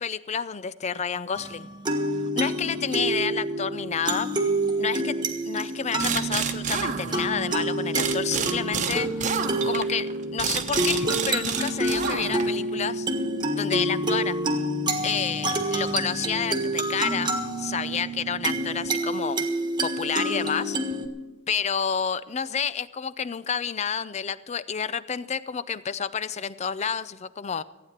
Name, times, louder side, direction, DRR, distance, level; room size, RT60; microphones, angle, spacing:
voice 1, 0.0-1.7 2.4-4.3 4.8-5.2 5.5-13.1 13.6-14.4 15.0-19.4 19.8-20.8 21.5-27.6, left 7 dB, 30° left, 16 dB, 0.4 m, -30 dB
sound 1, 1.3-21.1, right 1 dB, 20° right, 1.5 m, -28 dB
sound 2, 6.0-7.6 7.9-12.6, right 6 dB, 35° right, 1.0 m, -29 dB
15.0 x 9.2 x 7.3 m, 1.2 s
head